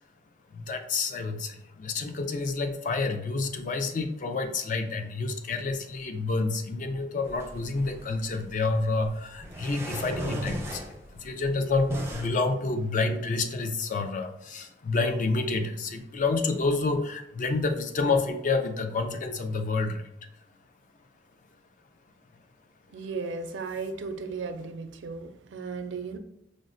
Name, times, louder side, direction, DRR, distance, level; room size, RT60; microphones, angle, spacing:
voice 1, 0.5-20.1, left 3 dB, 45° left, 6 dB, 0.4 m, -29 dB
sound 1, 7.2-12.3, equal, 15° right, 0.4 m, -37 dB
voice 2, 22.9-26.2, right 4 dB, 90° right, 7 dB, 0.4 m, -35 dB
5.0 x 2.1 x 2.5 m, 0.76 s
head